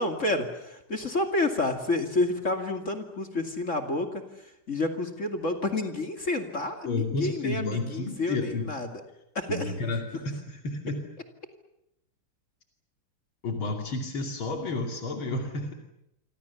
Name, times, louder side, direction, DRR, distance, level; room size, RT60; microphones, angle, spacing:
voice 1, 0.0-4.2 4.7-8.9 9.3-9.7, left 2 dB, 35° left, 6 dB, 2.7 m, -29 dB
voice 2, 6.8-8.7 9.5-11.0 13.4-15.7, left 3 dB, 80° left, 3 dB, 3.5 m, -31 dB
28.5 x 25.0 x 7.0 m, 0.84 s
omnidirectional pair, 2.2 m